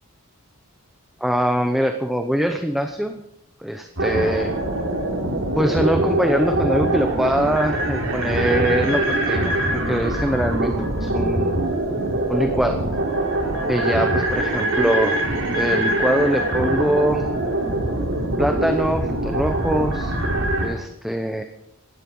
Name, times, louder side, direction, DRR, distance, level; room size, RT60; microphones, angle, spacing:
voice 1, 1.2-3.1 3.6-4.5 5.6-9.5 9.9-11.5 12.3-12.8 13.7-17.2 18.4-20.1 20.6-21.4, equal, ahead, 5 dB, 0.9 m, -23 dB
sound 1, 4.0-20.7, right 1 dB, 65° right, 4.4 m, -23 dB
18.0 x 13.5 x 5.5 m, 0.81 s
head